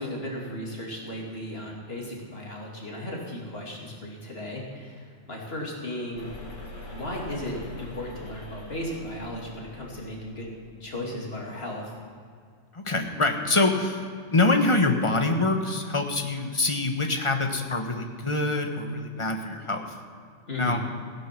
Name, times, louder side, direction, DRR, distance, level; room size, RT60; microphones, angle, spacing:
voice 1, 0.0-6.3 6.9-10.5 10.8-12.0 20.5-20.8, left 1 dB, 50° left, -2 dB, 3.0 m, -35 dB
sound 1, 6.1-10.7, left 2 dB, 80° left, 3.1 m, -43 dB
voice 2, 12.7-20.0 20.6-20.8, left 2 dB, 25° left, 4 dB, 1.3 m, -25 dB
16.5 x 10.0 x 6.0 m, 2.2 s
omnidirectional pair, 1.3 m